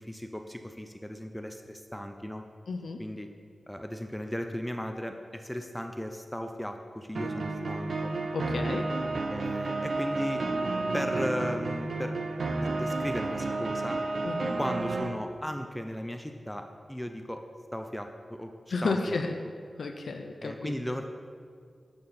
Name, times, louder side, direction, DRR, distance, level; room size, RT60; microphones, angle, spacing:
voice 1, 0.0-2.4 3.0-3.3 3.7-8.1 9.3-10.5 10.9-12.2 12.6-14.0 14.6-17.4 17.7-18.5 18.8-19.2 20.4-21.0, equal, 5° left, 5 dB, 0.3 m, -36 dB
voice 2, 2.7-3.0 8.3-8.9 14.2-14.5 18.7-19.4 19.8-20.7, left 3 dB, 80° left, 4 dB, 0.4 m, -32 dB
sound 1, 7.1-15.2, right 3 dB, 65° right, 0.5 m, -31 dB
7.1 x 6.6 x 4.1 m, 2.1 s
wide cardioid pair, 125°, 0 cm